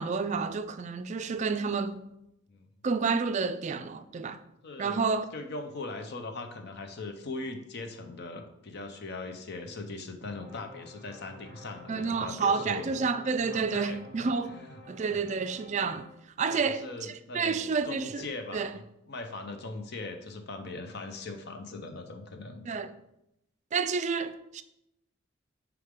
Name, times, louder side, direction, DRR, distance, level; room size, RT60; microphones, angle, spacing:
voice 1, 0.0-2.1 2.8-4.4 4.8-5.3 11.9-14.6 14.9-16.1 16.4-18.3 18.5-18.7 22.7-22.9 23.7-24.6, right 5 dB, 35° right, 0.3 m, -30 dB
voice 2, 4.6-5.0 5.3-12.9 13.5-14.0 14.5-14.7 15.1-15.2 16.5-18.7 19.1-22.7, left 3 dB, 55° left, 0.7 m, -40 dB
sound 1, 10.2-16.1, left 2 dB, 15° left, 2.3 m, -50 dB
6.5 x 4.9 x 3.7 m
head